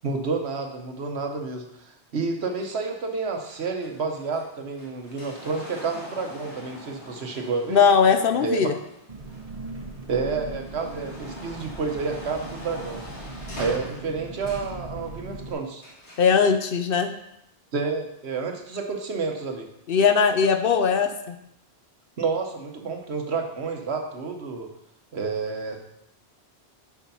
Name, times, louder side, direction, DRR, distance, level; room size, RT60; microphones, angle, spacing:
voice 1, 0.0-7.8 8.4-8.7 10.1-13.0 13.6-15.8 17.7-19.7 22.2-24.7 25.1-25.9, right 4 dB, 70° right, 4 dB, 1.3 m, -29 dB
sound 1, 2.6-9.8 10.3-14.8 15.8-16.4 17.2-17.3, left 1 dB, 85° left, 2.0 m, -43 dB
voice 2, 7.7-8.7 16.2-17.1 19.9-21.4, left 6 dB, 60° left, 8 dB, 0.8 m, -20 dB
Engine, 9.1-15.5, right 2 dB, 35° right, 1.1 m, -39 dB
6.8 x 5.0 x 5.5 m, 0.80 s
omnidirectional pair, 1.1 m